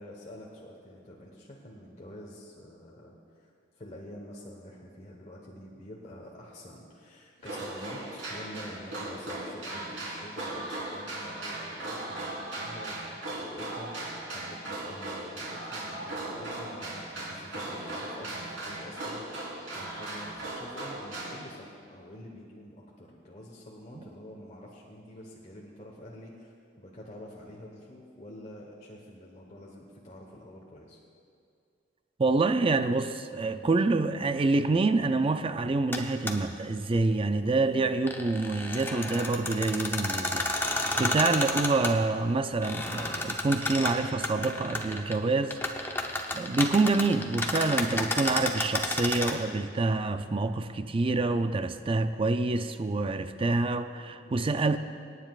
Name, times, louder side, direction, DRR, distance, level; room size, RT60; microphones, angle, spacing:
voice 1, 0.0-3.5 3.8-31.0 40.9-41.0 54.2-54.4, left 1 dB, 40° left, -3 dB, 1.2 m, -47 dB
sound 1, 7.4-21.4, right 2 dB, 90° right, 3.6 m, -38 dB
voice 2, 32.2-45.6 46.3-54.8, right 3 dB, 30° right, 10 dB, 0.4 m, -27 dB
sound 2, 35.9-36.0 36.3-36.4 37.9-41.9 42.6-45.2 45.4-49.3, left 2 dB, 10° left, 0.8 m, -31 dB
25.5 x 9.5 x 2.4 m, 2.3 s
head